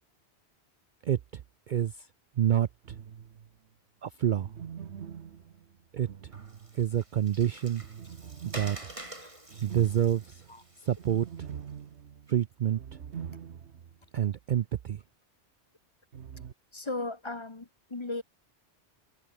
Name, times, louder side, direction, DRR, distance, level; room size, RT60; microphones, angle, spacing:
voice 1, 1.0-3.0 4.0-4.5 5.9-6.3 6.7-7.9 8.4-8.9 9.6-10.5 10.8-11.5 12.3-12.8 14.1-15.0, right 10 dB, 60° right, 0.5 m, -28 dB
sound 1, 2.8-3.6 4.3-7.1 7.8-14.0 14.3-14.4 16.1-16.5, right 8 dB, 75° right, 1.3 m, -44 dB
Water, 6.3-11.7, right 1 dB, 30° right, 4.2 m, -47 dB
voice 2, 9.2-9.6 10.5-10.6 16.7-18.2, left 2 dB, 25° left, 1.1 m, -37 dB
omnidirectional pair, 1.2 m